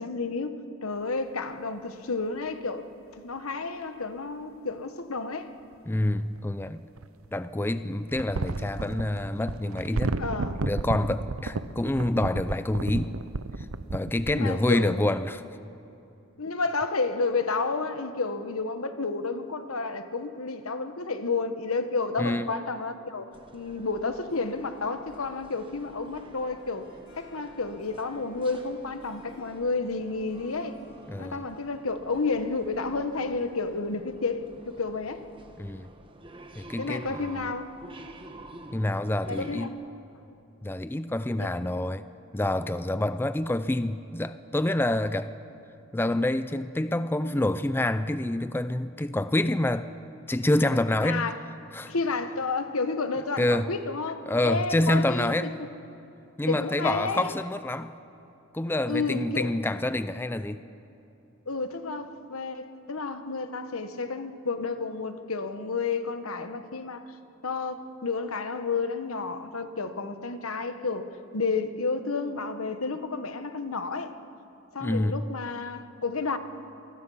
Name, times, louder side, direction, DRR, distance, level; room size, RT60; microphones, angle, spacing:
voice 1, 0.0-2.9 3.2-5.5 10.2-10.7 14.3-15.0 16.4-23.3 23.5-30.8 31.2-35.3 36.8-37.6 39.3-39.7 41.4-41.5 51.0-51.4 51.9-55.5 56.5-57.3 58.9-59.6 61.5-67.1 67.4-74.2 74.7-76.4, left 4 dB, 85° left, 1.2 m, -31 dB
sound 1, 3.8-3.9 6.1-7.3 8.1-14.4, right 3 dB, 80° right, 0.7 m, -33 dB
voice 2, 5.9-6.8 7.3-10.2 10.6-13.1 13.6-13.7 13.9-15.4 22.2-22.5 31.1-31.5 35.6-35.9 36.6-37.2 38.7-39.7 40.6-42.0 42.3-45.3 45.9-49.9 50.3-51.3 51.7-51.9 53.4-53.7 54.3-55.6 56.4-58.0 58.5-60.6 74.8-75.2, left 1 dB, 10° left, 0.4 m, -27 dB
sound 2, 23.3-39.7, right 2 dB, 25° right, 1.2 m, -49 dB
Harp, 24.3-35.7, equal, 55° left, 7.2 m, -58 dB
27.0 x 20.5 x 5.6 m
head